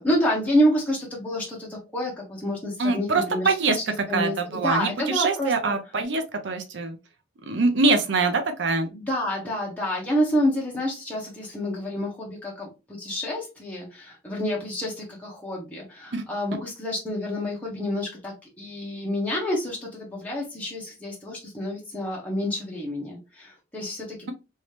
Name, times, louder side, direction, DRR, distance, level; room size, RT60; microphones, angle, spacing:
voice 1, 0.0-5.7 8.8-24.3, equal, 10° left, -4 dB, 1.0 m, -28 dB
voice 2, 2.8-7.0 7.5-8.9 16.1-16.2, right 3 dB, 70° right, 6 dB, 0.6 m, -24 dB
3.1 x 2.7 x 3.2 m, 0.28 s
head